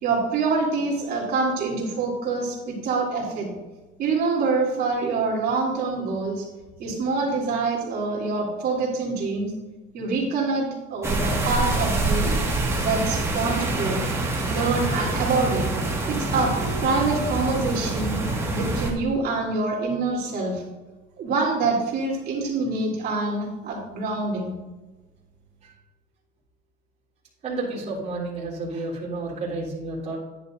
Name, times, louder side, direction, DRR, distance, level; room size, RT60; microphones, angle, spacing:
voice 1, 0.0-3.5 4.0-6.5 6.8-9.5 9.9-12.4 12.8-14.0 14.5-15.7 16.1-16.6 16.8-18.2 18.5-20.6 21.2-24.5, right 3 dB, 55° right, -3 dB, 3.4 m, -25 dB
sound 1, 11.0-18.9, right 2 dB, 15° right, 1.9 m, -26 dB
voice 2, 27.4-30.2, right 2 dB, 35° right, -6 dB, 3.6 m, -31 dB
11.0 x 10.5 x 2.7 m, 1.2 s
cardioid pair, 140°, 19 cm